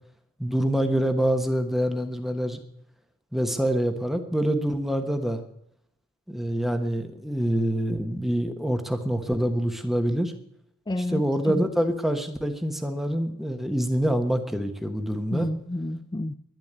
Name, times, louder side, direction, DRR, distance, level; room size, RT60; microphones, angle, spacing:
voice 1, 0.4-2.6 3.3-5.4 6.3-10.3 11.0-15.5, equal, ahead, 6 dB, 1.2 m, -26 dB
voice 2, 10.9-11.6 15.3-16.3, left 1 dB, 20° left, 9 dB, 0.4 m, -30 dB
11.5 x 11.0 x 8.1 m, 0.73 s
head